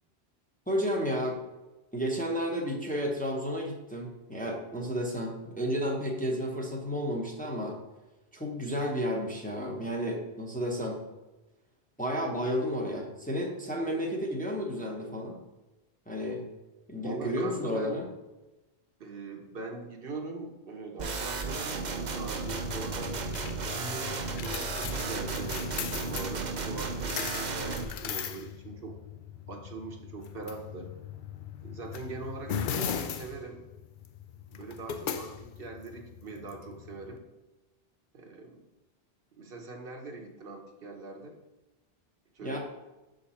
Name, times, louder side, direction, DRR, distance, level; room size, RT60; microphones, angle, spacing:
voice 1, 0.7-1.4 1.9-7.8 8.3-11.0 12.0-15.4 16.1-16.4 16.9-18.0 42.4-42.6, equal, 10° left, -1 dB, 0.9 m, -32 dB
voice 2, 17.0-18.0 19.0-23.2 23.6-29.0 29.5-30.9 31.6-33.6 34.5-37.3 38.1-38.6 39.4-41.4 42.3-42.6, right 3 dB, 65° right, 1 dB, 1.2 m, -42 dB
sound 1, 21.0-27.8, right 4 dB, 50° right, 0.8 m, -34 dB
sound 2, 22.5-37.2, left 8 dB, 60° left, 0.6 m, -39 dB
6.6 x 5.1 x 4.2 m, 1.1 s
omnidirectional pair, 1.1 m